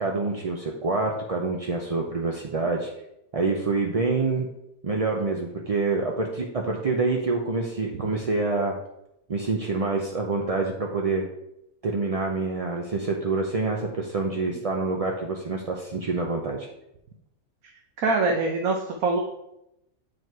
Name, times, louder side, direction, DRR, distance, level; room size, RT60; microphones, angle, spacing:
voice 1, 0.0-2.9 3.3-4.5 4.8-8.7 9.3-11.3 11.8-16.7, right 3 dB, 40° right, 0 dB, 0.5 m, -26 dB
voice 2, 18.0-19.2, right 3 dB, 75° right, 1 dB, 1.3 m, -24 dB
7.6 x 5.1 x 4.6 m, 0.85 s
omnidirectional pair, 1.5 m